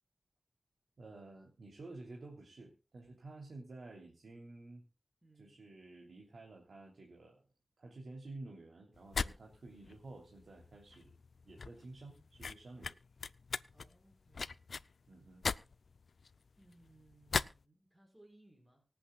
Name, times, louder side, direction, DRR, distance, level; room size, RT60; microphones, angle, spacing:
voice 1, 1.0-4.8 5.3-7.5 7.8-11.1 11.4-12.9 15.1-15.4, right 2 dB, 80° right, 0 dB, 3.2 m, -52 dB
voice 2, 5.2-5.6 13.7-14.6 16.6-18.8, right 1 dB, 15° right, 1 dB, 4.7 m, -64 dB
sound 1, 8.9-17.6, left 4 dB, 85° left, 0.5 m, -40 dB
25.0 x 8.4 x 2.3 m, 0.32 s
wide cardioid pair, 75°, 0 cm